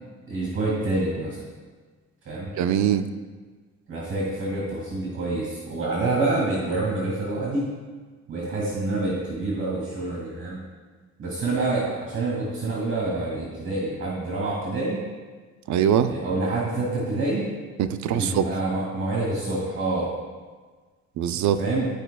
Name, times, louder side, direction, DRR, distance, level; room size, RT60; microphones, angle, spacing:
voice 1, 0.3-1.4 2.3-2.5 3.9-7.7 8.3-10.6 11.2-15.0 16.1-17.5 18.1-20.1 21.6-21.9, right 2 dB, 45° right, -4 dB, 2.1 m, -27 dB
voice 2, 2.6-3.1 15.7-16.1 17.8-18.5 21.2-21.6, right 9 dB, 75° right, 10 dB, 0.5 m, -22 dB
13.0 x 5.0 x 2.3 m, 1.4 s
cardioid pair, 95°, 29 cm